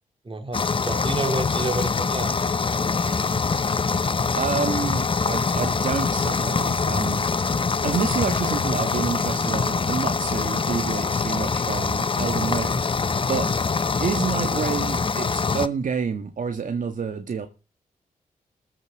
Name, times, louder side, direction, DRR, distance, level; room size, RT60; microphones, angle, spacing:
voice 1, 0.2-2.4, right 2 dB, 35° right, 3.0 m, -29 dB
sound 1, 0.5-15.7, left 4 dB, 35° left, 0.7 m, -24 dB
voice 2, 4.4-7.2 7.6-12.8 13.3-13.5 14.0-17.5, right 6 dB, 65° right, 1.8 m, -28 dB
14.5 x 6.0 x 7.4 m
cardioid pair, 50°, 15 cm